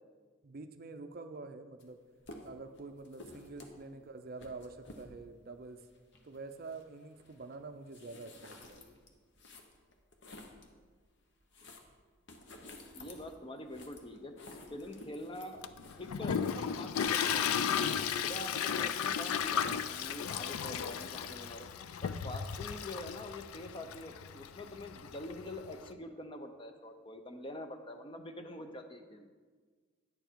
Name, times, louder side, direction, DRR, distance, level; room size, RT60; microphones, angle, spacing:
voice 1, 0.4-2.0 2.4-5.8 6.2-8.8, right 3 dB, 45° right, 8 dB, 0.4 m, -47 dB
sound 1, 1.8-1.9 2.2-10.7 11.2-18.0, left 2 dB, 55° left, 1.0 m, -53 dB
voice 2, 12.9-15.6 16.0-17.8 18.2-21.7 22.0-29.3, left 1 dB, 25° left, 6 dB, 0.6 m, -45 dB
Toilet flush, 15.6-25.9, left 8 dB, 90° left, 0.4 m, -35 dB
9.8 x 7.0 x 4.5 m, 1.5 s
head